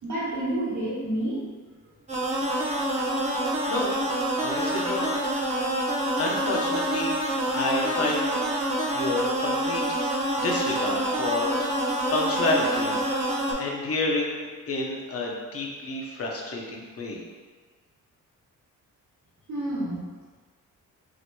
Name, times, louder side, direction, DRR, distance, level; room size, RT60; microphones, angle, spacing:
voice 1, 0.0-1.4 19.5-20.0, right 1 dB, 60° right, -6 dB, 1.3 m, -29 dB
sound 1, 2.1-13.5, right 1 dB, 20° right, 0.7 m, -27 dB
voice 2, 4.4-5.1 6.2-8.4 8.9-11.5 12.1-13.0 13.6-17.2, left 2 dB, 45° left, -1 dB, 0.7 m, -29 dB
4.6 x 2.9 x 2.2 m, 1.5 s
cardioid pair, 110°, 34 cm